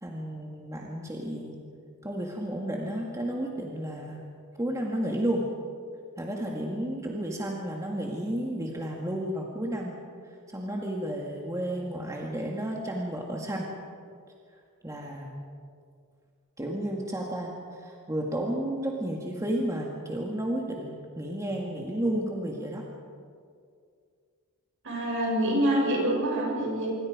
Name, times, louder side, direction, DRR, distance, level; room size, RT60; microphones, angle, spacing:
voice 1, 0.0-1.6 2.0-4.2 4.6-5.5 6.2-10.0 10.2-13.7 14.8-15.3 16.6-22.9, right 1 dB, 15° right, -1 dB, 2.0 m, -32 dB
voice 2, 24.8-26.9, right 1 dB, 65° right, -2 dB, 7.9 m, -26 dB
26.5 x 23.5 x 5.1 m, 2.2 s
head